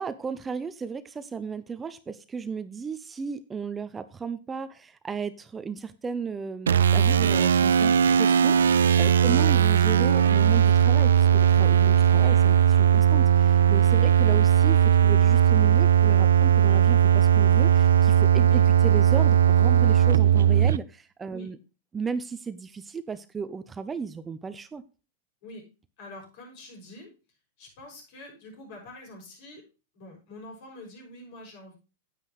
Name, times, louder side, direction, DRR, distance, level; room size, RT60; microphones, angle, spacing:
voice 1, 0.0-21.6 21.9-24.8, right 5 dB, 15° right, 13 dB, 0.6 m, -35 dB
sound 1, 6.7-20.8, right 9 dB, 85° right, 0.4 m, -19 dB
voice 2, 9.2-9.5 12.2-12.4 18.5-18.6 21.3-21.5 25.4-25.7 26.0-27.1 27.6-29.7 29.9-31.7, left 1 dB, 60° left, 1 dB, 5.8 m, -45 dB
9.7 x 8.2 x 3.0 m, 0.31 s
hypercardioid pair, 120°, 0 cm